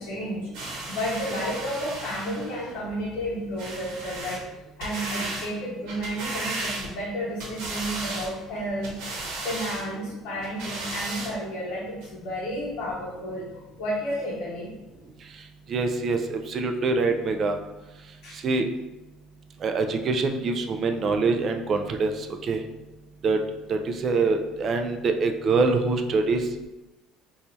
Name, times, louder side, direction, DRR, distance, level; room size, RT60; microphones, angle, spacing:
voice 1, 0.0-4.4 4.8-13.5 13.8-14.7 18.2-18.3, equal, 70° left, -6 dB, 0.7 m, -32 dB
sound 1, 0.5-2.5 3.6-4.4 4.8-5.5 5.9-7.1 7.4-8.3 8.8-9.9 10.4-11.3 12.0-12.1, right 2 dB, 80° right, 0.9 m, -34 dB
voice 2, 15.7-17.6 18.4-18.7 19.6-22.6 23.2-23.4 23.7-26.4, right 3 dB, 35° right, 5 dB, 0.3 m, -24 dB
4.2 x 2.4 x 2.6 m, 1.1 s
cardioid pair, 150°, 0 cm